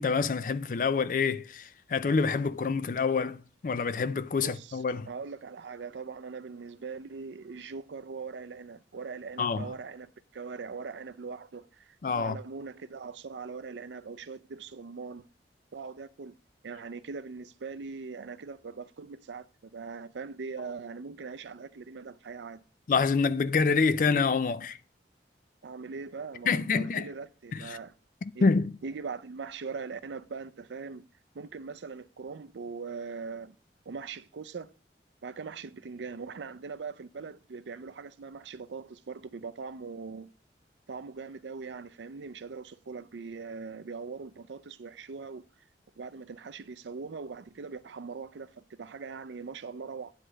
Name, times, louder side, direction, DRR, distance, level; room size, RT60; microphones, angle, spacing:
voice 1, 0.0-3.4 3.6-5.1 9.4-9.7 12.0-12.4 22.9-24.8 26.5-27.1 27.5-27.6 28.2-28.7, left 4 dB, 50° left, 0.4 m, -27 dB
voice 2, 4.4-15.3 15.7-16.4 16.6-22.6 25.6-27.9 28.3-28.5 28.8-31.1 31.3-33.5 33.9-34.7 35.2-40.3 40.9-45.4 46.0-48.5 48.8-50.1, right 5 dB, 90° right, 0.5 m, -41 dB
9.5 x 3.3 x 6.2 m
head